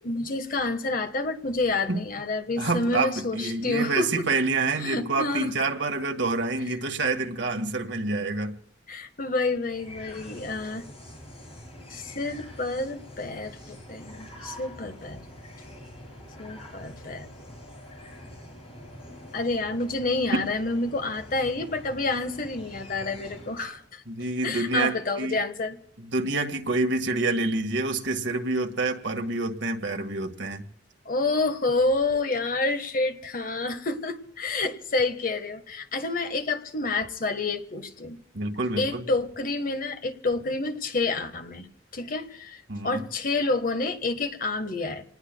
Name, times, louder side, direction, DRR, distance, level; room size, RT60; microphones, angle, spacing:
voice 1, 0.0-4.2 4.8-5.5 8.9-10.8 11.9-15.2 16.4-17.3 19.3-24.0 24.4-25.8 31.0-38.2 38.8-41.7 41.9-45.0, left 3 dB, 50° left, 7 dB, 1.5 m, -28 dB
voice 2, 2.6-8.6 24.1-25.4 26.0-30.6 38.3-39.1 42.7-43.0, right 3 dB, 80° right, 5 dB, 1.8 m, -27 dB
sound 1, 9.6-23.8, equal, 35° left, 7.8 m, -45 dB
28.5 x 19.5 x 2.3 m, 0.75 s
head